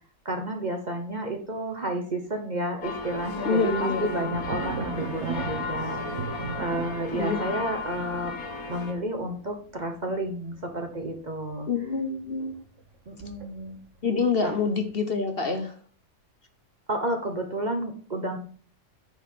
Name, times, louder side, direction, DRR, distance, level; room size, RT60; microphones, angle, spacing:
voice 1, 0.2-8.4 8.7-11.7 13.1-13.8 14.4-14.5 16.9-18.4, right 1 dB, 35° right, 3 dB, 1.1 m, -31 dB
sound 1, 2.8-8.9, left 4 dB, 85° left, 1.8 m, -34 dB
voice 2, 3.4-4.4 7.1-7.4 11.7-12.6 14.0-15.7, left 4 dB, 45° left, 6 dB, 1.3 m, -26 dB
sound 2, 4.3-14.0 14.4-14.9, right 5 dB, 60° right, 1.3 m, -38 dB
9.3 x 4.1 x 6.5 m, 0.44 s
omnidirectional pair, 1.5 m